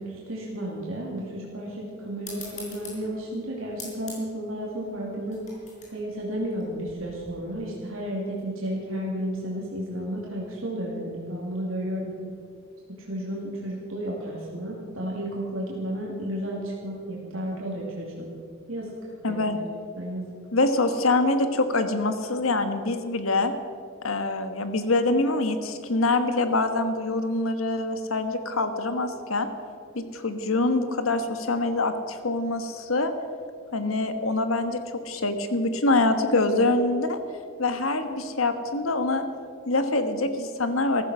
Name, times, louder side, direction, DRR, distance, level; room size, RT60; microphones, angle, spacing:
voice 1, 0.0-5.4 5.9-12.2 12.9-18.4 18.7-18.9 19.3-19.5 20.0-20.3, right 1 dB, 80° right, -3 dB, 2.7 m, -32 dB
sound 1, 2.2-7.3, left 3 dB, 35° left, 5.0 m, -45 dB
voice 2, 19.2-19.6 20.5-23.5 24.0-29.5 29.9-33.1 33.7-34.8 35.0-37.2 37.6-39.2 39.7-41.0, left 2 dB, 90° left, 8 dB, 1.4 m, -25 dB
14.5 x 14.5 x 6.2 m, 2.3 s
head